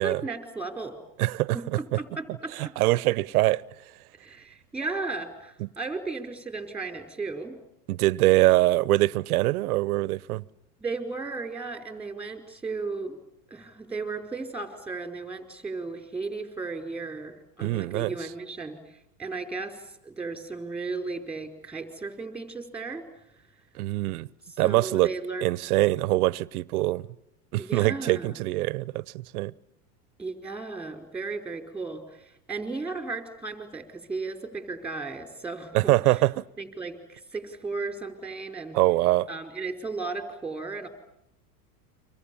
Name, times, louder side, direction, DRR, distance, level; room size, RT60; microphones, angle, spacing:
voice 1, 0.0-1.0 1.5-2.7 4.2-7.6 10.8-13.2 13.5-23.0 24.4-25.4 27.6-28.4 30.2-36.2 36.6-38.8 39.3-40.9, right 3 dB, 5° right, 4.7 m, -35 dB
voice 2, 1.2-1.6 1.9-2.0 2.8-3.6 5.6-5.7 7.9-10.4 17.6-18.1 23.8-24.3 24.6-25.1 25.4-27.0 27.5-29.0 29.3-29.5 35.7-36.4 38.7-39.3, right 18 dB, 70° right, 0.9 m, -23 dB
29.5 x 25.0 x 7.1 m
supercardioid pair, 120°, 45 cm